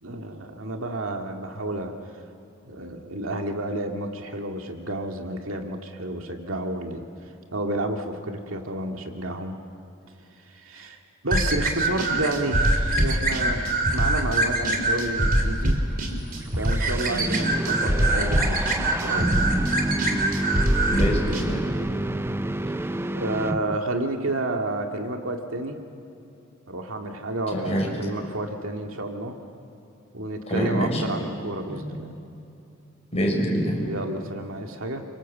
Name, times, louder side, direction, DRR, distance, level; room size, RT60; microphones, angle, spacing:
voice 1, 0.0-1.9 2.7-7.0 7.5-9.6 10.5-11.0 11.2-15.8 16.6-18.7 19.0-19.6 23.1-25.8 26.7-29.3 30.1-32.1 33.8-35.0, right 1 dB, 85° right, 3 dB, 2.2 m, -30 dB
sound 1, 11.3-21.4, right 1 dB, 45° right, 3.6 m, -23 dB
sound 2, 16.1-24.0, right 1 dB, 10° right, 0.6 m, -29 dB
voice 2, 20.8-21.6 27.5-27.9 30.5-31.0 31.7-31.8 33.1-33.8, equal, 30° left, -1 dB, 6.0 m, -25 dB
30.0 x 25.0 x 7.4 m, 2.7 s
head